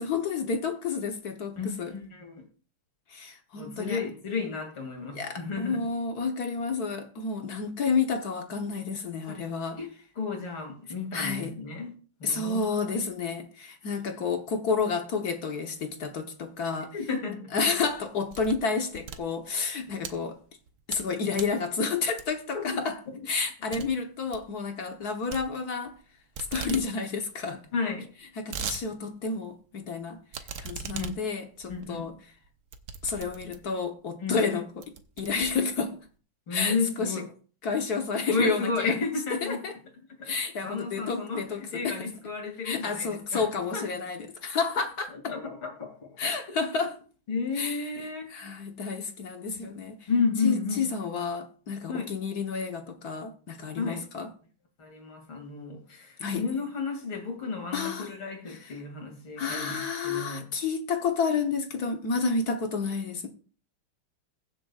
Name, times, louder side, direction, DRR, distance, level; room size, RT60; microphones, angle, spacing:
voice 1, 0.0-1.9 3.1-4.0 5.1-9.8 11.1-11.6 12.2-16.9 17.5-20.4 20.9-22.9 23.3-25.9 26.5-27.6 28.4-30.2 30.6-32.1 33.0-36.0 36.5-37.2 37.6-39.0 39.3-39.7 40.2-42.1 42.6-45.1 46.2-46.9 47.6-47.8 48.3-50.1 50.4-54.3 56.2-56.5 57.7-58.1 58.5-58.6 59.4-63.3, left 5 dB, 55° left, 1.4 m, -30 dB
voice 2, 1.6-2.5 3.6-5.8 9.3-9.4 9.8-9.9 10.1-11.9 12.2-12.6 16.9-17.5 22.5-22.8 27.7-28.1 30.9-31.1 31.7-32.1 34.2-34.4 36.5-37.3 38.3-39.6 40.2-40.3 40.6-43.4 43.7-43.8 45.1-46.2 47.3-48.5 49.4-50.9 51.9-52.1 53.8-54.0 54.8-60.4, left 4 dB, 75° left, 3.3 m, -32 dB
sound 1, 17.7-18.7 19.0-20.1 20.6-21.1 21.3-21.6 22.2-22.5 22.9-23.0 23.3-23.4 23.7-23.9 24.2-24.5 25.3-26.0 26.3-26.9 27.2-27.3 27.5-27.6 28.1-28.8 29.2-29.3 30.3-33.8 34.4-34.5 34.8-36.1, right 6 dB, 60° right, 1.2 m, -39 dB
22.0 x 7.5 x 2.4 m
omnidirectional pair, 2.3 m